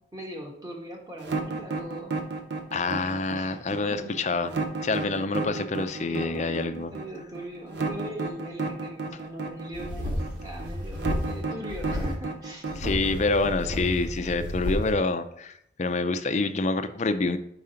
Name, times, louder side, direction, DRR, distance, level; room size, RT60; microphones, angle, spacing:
voice 1, 0.0-2.2 3.4-4.2 6.0-13.2, equal, 20° right, 0 dB, 1.3 m, -41 dB
sound 1, 1.2-14.1, right 3 dB, 70° right, 0.7 m, -32 dB
voice 2, 2.7-4.5 4.8-6.9 12.8-17.4, left 3 dB, 40° left, 9 dB, 0.5 m, -27 dB
sound 2, 9.7-11.4 11.7-12.1 12.7-14.9, left 1 dB, 45° right, 1.8 m, -32 dB
5.0 x 4.8 x 5.6 m, 0.72 s
head